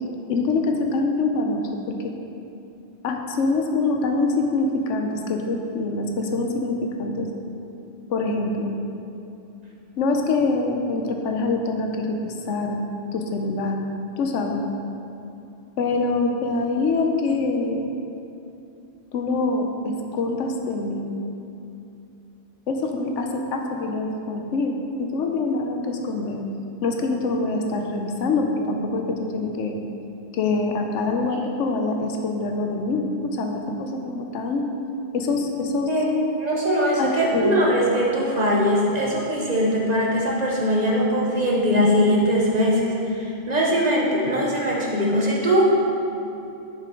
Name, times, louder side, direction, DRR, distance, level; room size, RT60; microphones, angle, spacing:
voice 1, 0.3-2.1 3.0-7.3 8.1-8.7 10.0-12.8 13.1-13.8 14.2-14.6 15.8-17.9 19.1-21.1 22.7-26.4 26.8-29.8 30.3-34.7 35.1-35.9 37.0-37.7, left 3 dB, 80° left, 3 dB, 1.0 m, -25 dB
voice 2, 36.4-45.8, equal, 40° right, -3 dB, 0.9 m, -21 dB
6.8 x 5.8 x 3.6 m, 2.8 s
omnidirectional pair, 1.2 m